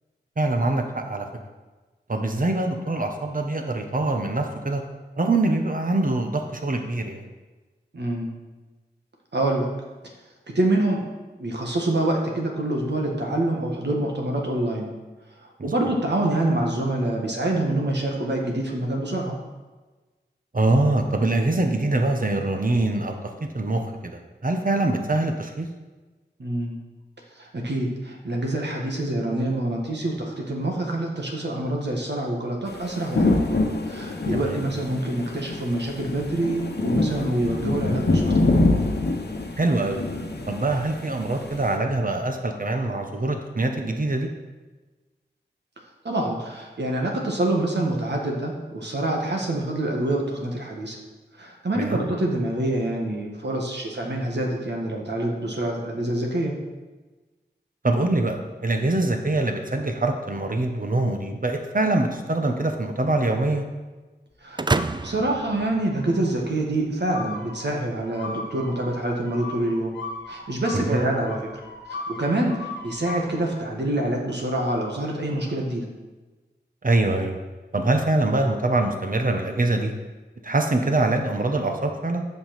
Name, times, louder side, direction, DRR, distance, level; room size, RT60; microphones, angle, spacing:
voice 1, 0.4-1.3 2.1-4.8 5.2-7.2 15.6-15.7 20.5-25.7 34.3-34.6 39.6-40.0 40.5-44.3 51.7-52.0 57.8-63.6 70.7-71.0 76.8-77.4 77.7-79.9 80.4-82.2, right 2 dB, 50° right, 4 dB, 1.2 m, -24 dB
voice 2, 7.9-8.3 9.3-9.7 10.5-11.1 11.4-14.9 15.4-19.4 26.4-26.8 27.4-33.4 33.9-38.4 46.0-51.0 51.4-56.5 64.4-64.7 65.0-70.0 70.3-71.5 71.9-75.9, right 1 dB, 70° right, 0 dB, 1.7 m, -26 dB
sound 1, 32.7-41.8, left 2 dB, 60° left, 1.1 m, -25 dB
sound 2, 64.6-66.5, right 3 dB, 25° right, 0.4 m, -28 dB
sound 3, 64.7-65.5 65.9-66.4 67.1-73.4, left 2 dB, 80° left, 1.3 m, -38 dB
7.8 x 5.6 x 6.0 m, 1.2 s
cardioid pair, 40°, 19 cm